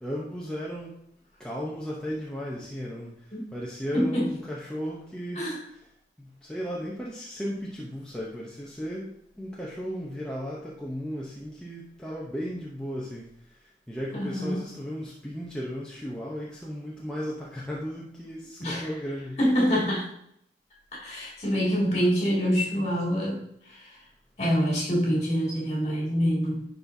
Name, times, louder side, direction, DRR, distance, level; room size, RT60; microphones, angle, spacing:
voice 1, 0.0-1.0 1.4-5.8 6.2-9.1 9.4-13.3 13.5-19.4, equal, 5° left, -5 dB, 0.7 m, -35 dB
voice 2, 3.9-4.3 5.4-5.6 14.1-14.7 18.6-18.9 19.4-20.1 20.9-24.0 24.4-26.7, equal, 40° left, -4 dB, 2.2 m, -26 dB
10.5 x 4.1 x 2.7 m, 0.73 s
head